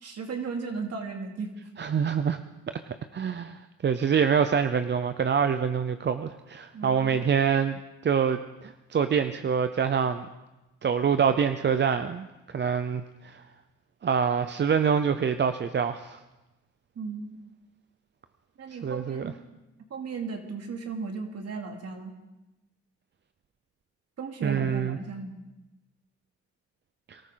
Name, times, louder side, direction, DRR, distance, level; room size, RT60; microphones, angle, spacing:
voice 1, 0.0-1.5 6.7-7.3 17.0-17.4 18.6-19.3 19.9-22.1 24.2-25.3, right 4 dB, 55° right, 2 dB, 2.7 m, -35 dB
voice 2, 1.8-2.4 3.1-10.3 10.8-12.3 12.5-13.4 14.0-16.2 18.7-19.3 24.4-25.0 27.1-27.2, right 7 dB, 35° right, 10 dB, 0.7 m, -26 dB
23.5 x 13.5 x 3.9 m, 1.0 s
cardioid pair, 90°, 30 cm